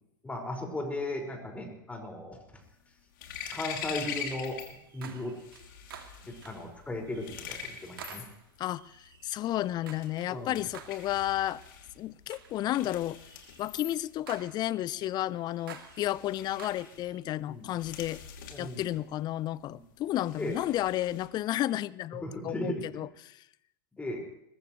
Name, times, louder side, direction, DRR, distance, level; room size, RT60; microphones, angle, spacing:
voice 1, 0.2-2.4 3.5-4.6 4.9-5.3 6.3-8.2 10.3-10.6 17.5-17.7 18.5-18.9 19.7-19.8 20.4-20.6 22.2-22.8 24.0-24.2, left 1 dB, 10° left, 5.2 m, -36 dB
sound 1, 2.6-4.8 5.1-21.3, left 8 dB, 65° left, 2.7 m, -44 dB
sound 2, 3.9-4.4 4.8-6.7 7.1-7.5 7.8-10.4 10.7-11.1 11.5-11.7 12.3-12.6 13.1-15.1 15.5-17.2, right 8 dB, 75° right, 2.4 m, -50 dB
voice 2, 9.2-11.6 12.0-13.2 13.6-18.2 18.6-23.4, left 14 dB, 35° left, 0.6 m, -32 dB
21.5 x 20.5 x 3.1 m
figure-of-eight pair, 90°, 12 cm